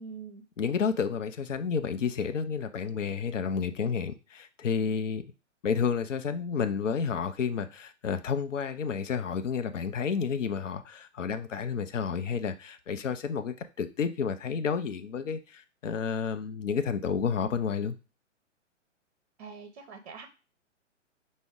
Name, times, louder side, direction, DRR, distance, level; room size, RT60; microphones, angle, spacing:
voice 1, 0.0-0.4 19.4-20.3, right 5 dB, 30° right, 0.5 m, -44 dB
voice 2, 0.6-5.2 5.6-18.0, left 6 dB, 70° left, 0.6 m, -30 dB
5.9 x 2.1 x 3.6 m
figure-of-eight pair, 115°, 38 cm